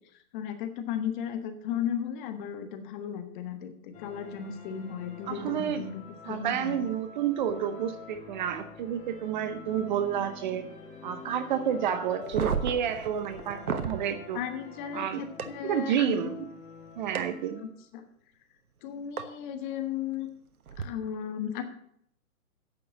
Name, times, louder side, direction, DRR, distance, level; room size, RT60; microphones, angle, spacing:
voice 1, 0.3-6.8 14.3-16.3 17.6-18.0 18.8-20.3 20.8-21.6, left 8 dB, 35° left, 7 dB, 1.3 m, -35 dB
sound 1, 3.9-17.8, left 4 dB, 15° left, 1.2 m, -47 dB
voice 2, 5.3-5.8 6.3-10.7 11.0-14.4 14.9-15.2 15.6-16.5 17.0-17.6, right 9 dB, 35° right, 10 dB, 0.7 m, -30 dB
sound 2, 12.2-14.0 15.4-15.5 17.1-17.2 19.2-19.3 20.7-20.8, right 6 dB, 85° right, 1.2 m, -32 dB
8.6 x 6.7 x 7.6 m, 0.69 s
hypercardioid pair, 135°, 43 cm